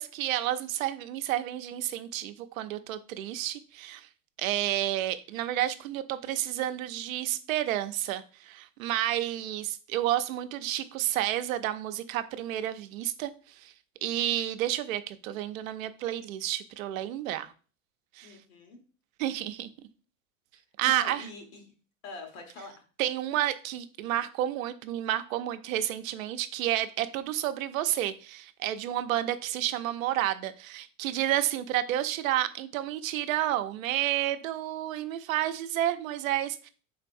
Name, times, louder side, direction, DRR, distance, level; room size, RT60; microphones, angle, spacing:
voice 1, 0.0-4.1 4.4-13.7 14.0-17.5 18.2-18.3 19.2-19.7 20.8-21.2 23.0-36.7, right 13 dB, 80° right, 9 dB, 0.6 m, -30 dB
voice 2, 18.2-18.8 20.8-21.6 22.0-22.7, left 1 dB, 75° left, 3 dB, 1.6 m, -43 dB
4.5 x 4.0 x 2.6 m, 0.38 s
supercardioid pair, 125°, 40 cm